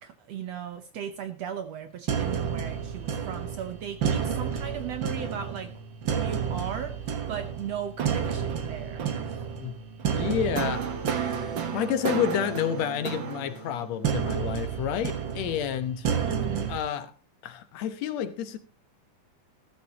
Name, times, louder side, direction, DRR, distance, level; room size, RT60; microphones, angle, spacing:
voice 1, 0.0-5.7 6.1-9.4 16.2-16.7, right 8 dB, 70° right, 1.6 m, -37 dB
sound 1, 2.1-16.8, right 7 dB, 55° right, 1.4 m, -31 dB
voice 2, 10.1-10.8 11.7-16.1 16.7-17.1 17.4-18.6, left 9 dB, 65° left, 1.9 m, -29 dB
15.0 x 14.0 x 2.9 m
omnidirectional pair, 3.9 m